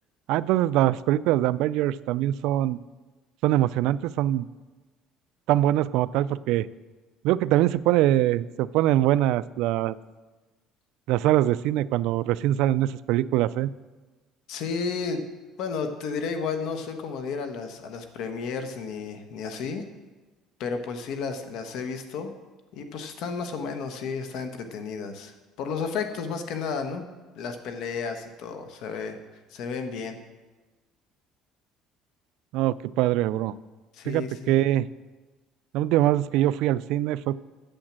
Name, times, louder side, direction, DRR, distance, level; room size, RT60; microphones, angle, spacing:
voice 1, 0.3-2.8 3.4-4.5 5.5-6.7 7.2-10.0 11.1-13.7 32.5-33.5 34.1-34.9 35.7-37.4, right 14 dB, 75° right, 17 dB, 0.3 m, -23 dB
voice 2, 14.5-15.2 15.6-19.8 20.6-22.3 22.7-27.1 27.3-29.2 29.5-30.2 33.9-34.6, left 5 dB, 65° left, 7 dB, 1.2 m, -32 dB
8.9 x 7.4 x 7.4 m, 1.2 s
cardioid pair, 140°, 0 cm